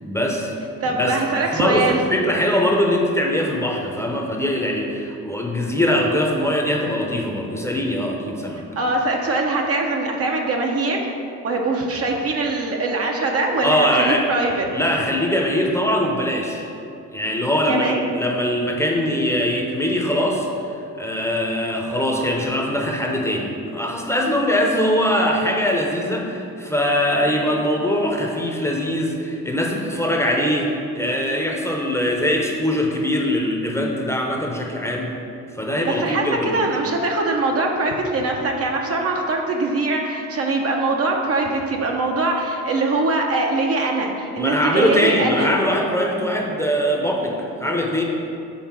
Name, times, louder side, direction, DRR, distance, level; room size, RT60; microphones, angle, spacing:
voice 1, 0.0-0.5 0.8-8.6 13.6-14.4 14.7-16.7 17.1-20.5 21.0-35.2 35.5-36.6 44.4-48.0, equal, 10° left, 0 dB, 0.8 m, -22 dB
voice 2, 0.8-2.0 8.8-11.0 11.4-14.7 17.7-18.0 35.8-45.6, right 2 dB, 50° right, 1 dB, 0.9 m, -22 dB
5.8 x 3.9 x 6.0 m, 2.7 s
cardioid pair, 90°, 30 cm